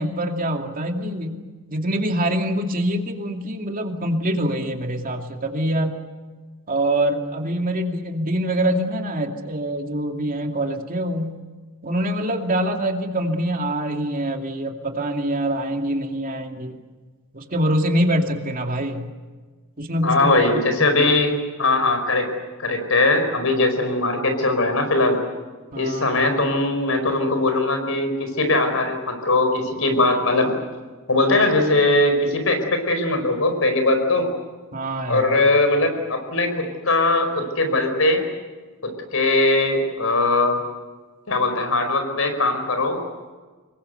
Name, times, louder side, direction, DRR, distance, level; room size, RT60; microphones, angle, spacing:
voice 1, 0.0-6.0 6.7-11.4 11.8-16.8 17.3-19.1 19.8-21.2 25.7-26.3 34.7-35.4, right 1 dB, 40° right, 3 dB, 2.5 m, -25 dB
voice 2, 20.0-22.3 22.6-25.2 25.7-30.5 31.1-34.3 35.1-38.2 38.8-40.6 41.3-43.0, left 2 dB, 70° left, 7 dB, 4.9 m, -20 dB
26.0 x 22.0 x 8.0 m, 1.4 s
head